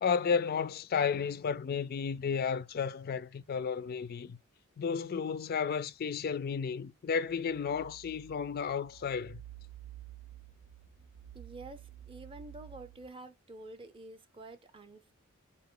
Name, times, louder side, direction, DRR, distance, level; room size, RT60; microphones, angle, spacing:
voice 1, 0.0-4.4 4.8-9.4, left 6 dB, 45° left, 0.3 m, -32 dB
sound 1, 7.3-13.1, right 13 dB, 80° right, 0.5 m, -51 dB
voice 2, 11.3-15.1, right 2 dB, 25° right, 0.5 m, -49 dB
4.2 x 2.9 x 3.7 m
head